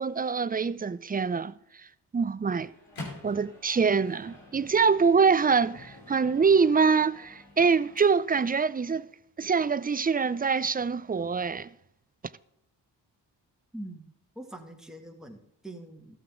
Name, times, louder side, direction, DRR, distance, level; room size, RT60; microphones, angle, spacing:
voice 1, 0.0-1.9 2.1-2.7 3.2-9.1 9.4-11.7, right 5 dB, 20° right, 0.4 m, -24 dB
Microwave oven, 2.5-8.5, left 2 dB, 85° left, 2.9 m, -48 dB
voice 2, 13.7-14.1 14.4-16.2, right 1 dB, ahead, 2.0 m, -43 dB
13.0 x 7.8 x 3.7 m
supercardioid pair, 40°, 45 cm